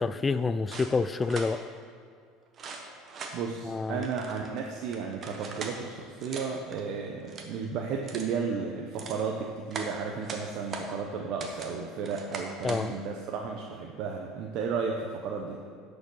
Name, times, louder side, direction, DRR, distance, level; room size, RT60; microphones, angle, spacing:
voice 1, 0.0-1.6 3.7-4.1 12.6-13.0, left 4 dB, 20° left, 13 dB, 0.3 m, -28 dB
sound 1, 0.7-1.5 2.5-3.4 4.0-5.8 6.2-6.8 7.2-7.6 8.0-8.3 8.8-9.2 9.7-10.9 11.4-11.7 12.0-12.8, right 4 dB, 35° right, 1.3 m, -40 dB
voice 2, 2.9-15.6, right 5 dB, 60° right, 1 dB, 0.9 m, -34 dB
11.0 x 5.2 x 6.3 m, 2.2 s
supercardioid pair, 115°, 0 cm